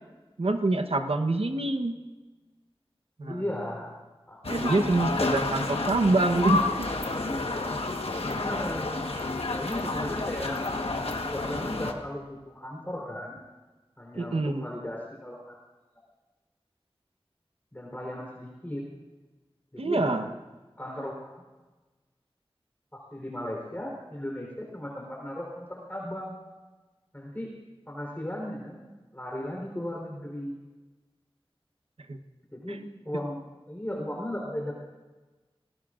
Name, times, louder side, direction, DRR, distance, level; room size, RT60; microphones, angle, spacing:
voice 1, 0.4-1.9 3.2-3.4 4.4-6.9 14.2-14.7 19.8-20.3 32.1-32.2 32.7-32.8, right 2 dB, 80° right, 6 dB, 1.0 m, -26 dB
voice 2, 3.2-4.0 4.3-4.4 8.3-9.0 9.5-10.7 11.1-13.4 14.0-15.6 17.7-18.8 19.7-20.2 20.8-21.4 22.9-26.4 27.1-27.5 27.9-28.8 29.1-30.6 32.5-32.8 33.0-33.4 33.7-34.7, left 1 dB, 20° left, -2 dB, 3.8 m, -36 dB
sound 1, 4.4-11.9, left 2 dB, 90° left, 1.3 m, -30 dB
26.5 x 18.5 x 2.5 m, 1.2 s
wide cardioid pair, 50°, 10 cm